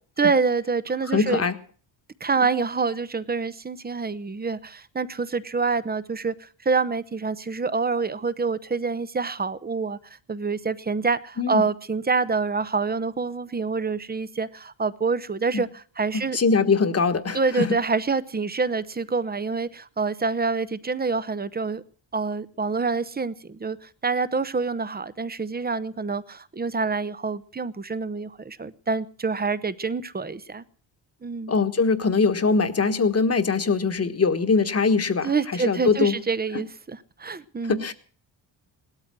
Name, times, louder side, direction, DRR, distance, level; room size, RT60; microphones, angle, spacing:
voice 1, 0.2-1.4 2.2-10.0 10.3-15.7 16.0-16.4 17.3-21.8 22.1-30.6 31.2-31.5 35.2-37.9, right 4 dB, 20° right, 0.8 m, -26 dB
voice 2, 1.1-1.5 2.4-2.5 11.4-11.6 15.5-15.6 16.1-17.7 31.5-36.2 36.5-36.6 37.7-37.9, left 4 dB, 30° left, 1.4 m, -22 dB
18.0 x 13.0 x 6.1 m
wide cardioid pair, 140°, 45 cm